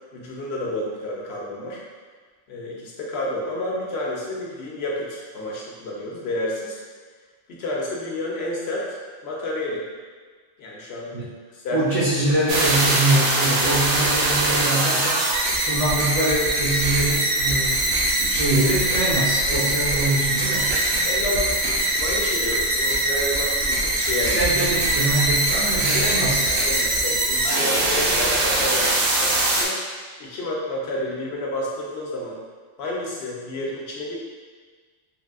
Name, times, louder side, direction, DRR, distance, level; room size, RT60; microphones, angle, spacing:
voice 1, 0.1-1.8 2.5-6.8 7.5-9.0 9.2-9.9 10.6-11.1 11.5-11.8 13.7-13.8 19.5-20.0 21.0-24.4 26.6-28.9 29.2-29.8 30.2-32.4 32.8-34.2, left 1 dB, 70° left, -3 dB, 0.8 m, -30 dB
voice 2, 11.7-15.2 15.7-20.8 24.2-26.6, right 1 dB, 50° right, -10 dB, 0.4 m, -24 dB
sound 1, 12.5-29.6, right 1 dB, 70° right, 0.8 m, -22 dB
3.3 x 2.6 x 2.3 m, 1.5 s
omnidirectional pair, 1.2 m